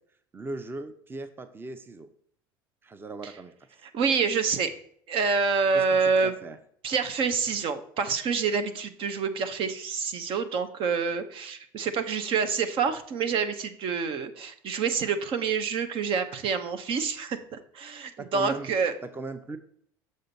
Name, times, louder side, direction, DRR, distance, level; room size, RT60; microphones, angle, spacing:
voice 1, 0.3-2.1 2.8-3.5 5.7-6.6 18.2-18.7 19.0-19.6, right 3 dB, 20° right, 10 dB, 0.7 m, -38 dB
voice 2, 3.9-4.7 5.1-6.3 6.8-18.9, right 5 dB, 50° right, 9 dB, 0.9 m, -27 dB
6.6 x 6.4 x 4.0 m, 0.64 s
hypercardioid pair, 70°, 11 cm